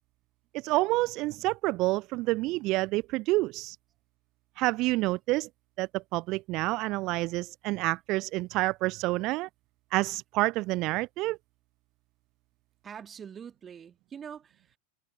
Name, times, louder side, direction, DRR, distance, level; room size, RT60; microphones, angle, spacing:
voice 1, 0.5-3.8 4.6-5.5 5.8-9.5 9.9-11.4, right 20 dB, 40° right, 0.5 m, -28 dB
voice 2, 12.8-14.8, right 7 dB, 20° right, 2.4 m, -44 dB
figure-of-eight pair, 90°, 0 cm